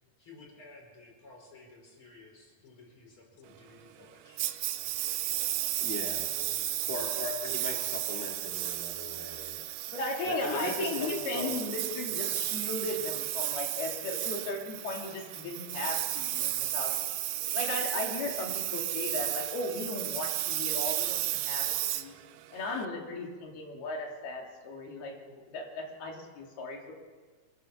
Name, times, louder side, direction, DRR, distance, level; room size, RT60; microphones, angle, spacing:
voice 1, 0.2-5.4 5.7-5.8 6.0-6.9, left 3 dB, 35° left, 0 dB, 5.6 m, -55 dB
Engine, 4.4-22.8, right 15 dB, 90° right, 2.7 m, -33 dB
voice 2, 5.8-6.3 6.9-9.6 10.3-11.6, left 2 dB, 5° left, 0 dB, 1.9 m, -38 dB
voice 3, 9.9-17.0 17.5-22.2 22.5-26.9, left 2 dB, 85° left, 1 dB, 4.8 m, -36 dB
24.5 x 15.5 x 7.3 m, 1.4 s
omnidirectional pair, 4.4 m